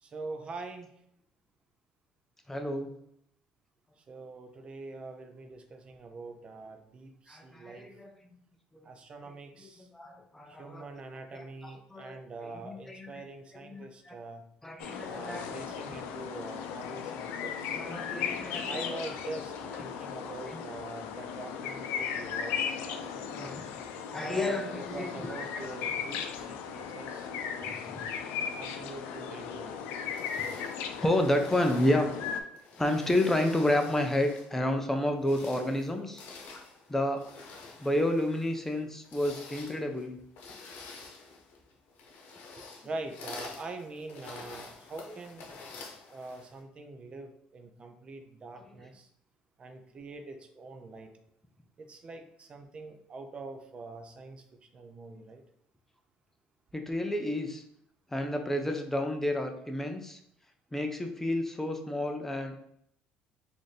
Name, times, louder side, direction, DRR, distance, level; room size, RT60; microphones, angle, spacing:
voice 1, 0.0-0.9 4.0-7.9 8.8-9.9 10.5-14.4 15.0-17.8 18.6-23.3 24.1-27.9 28.5-29.8 42.8-45.5 46.1-49.1 49.6-51.1 51.8-54.4 54.7-55.4, right 3 dB, 35° right, 5 dB, 0.5 m, -44 dB
voice 2, 2.5-2.9 7.3-8.1 9.9-10.9 11.3-12.1 12.6-13.1 13.7-14.2 14.6-15.5 17.7-19.0 23.3-23.7 24.1-25.3 27.6-28.1 31.0-32.1 32.8-36.2 36.9-37.2 37.8-40.2 45.1-45.2 56.7-57.6 58.1-60.2 60.7-62.5, left 1 dB, 10° left, 5 dB, 0.5 m, -30 dB
sound 1, 14.8-32.4, left 7 dB, 85° left, 0.4 m, -37 dB
sound 2, 30.0-34.6 35.1-46.6, left 4 dB, 70° left, 0.8 m, -48 dB
4.0 x 2.6 x 3.2 m, 0.70 s
cardioid pair, 105°, 3 cm